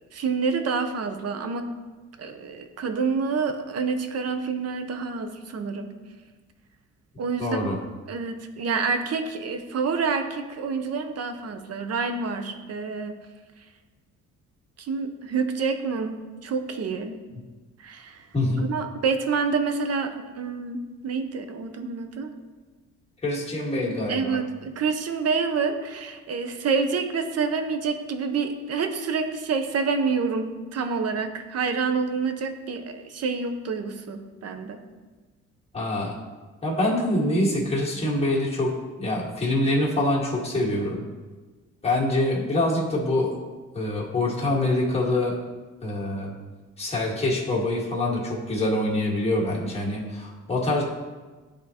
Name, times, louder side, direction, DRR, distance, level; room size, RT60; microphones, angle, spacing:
voice 1, 0.0-1.6 2.2-5.9 7.2-7.6 8.1-13.1 14.8-16.2 16.4-17.2 17.8-18.3 18.6-22.3 24.1-34.8, right 5 dB, 55° right, 7 dB, 0.7 m, -28 dB
voice 2, 7.4-7.7 18.3-18.6 23.2-24.4 35.7-36.1 36.6-38.7 39.0-41.0 41.8-43.3 43.7-45.3 45.8-46.3 46.8-50.8, left 1 dB, 20° left, -4 dB, 1.8 m, -25 dB
10.5 x 3.7 x 2.9 m, 1.3 s
cardioid pair, 90°, 30 cm